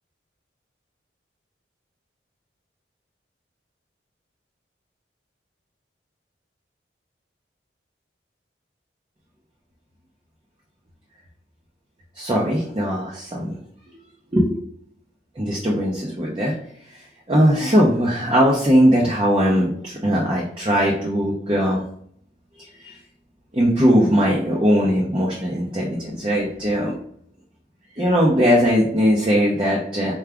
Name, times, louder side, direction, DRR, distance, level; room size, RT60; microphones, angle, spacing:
voice 1, 12.2-13.5 14.3-14.5 15.4-16.5 17.3-21.8 22.8-22.9 23.5-27.0 28.0-30.1, equal, 25° right, -3 dB, 0.6 m, -19 dB
4.7 x 2.3 x 3.4 m, 0.65 s
head